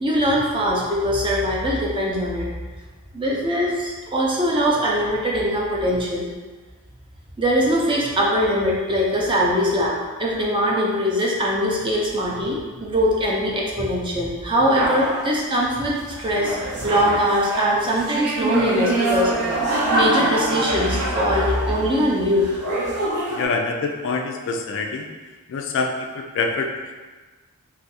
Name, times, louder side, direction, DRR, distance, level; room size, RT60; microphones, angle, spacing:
voice 1, 0.0-2.5 3.1-6.2 7.4-19.3 19.9-22.5, equal, 20° right, -3 dB, 0.5 m, -22 dB
sound 1, 14.7-15.3 16.1-22.1 22.4-23.5, right 2 dB, 70° right, 0.7 m, -24 dB
voice 2, 23.3-25.1 25.5-26.9, left 4 dB, 55° left, 4 dB, 0.3 m, -25 dB
2.6 x 2.5 x 4.0 m, 1.3 s
head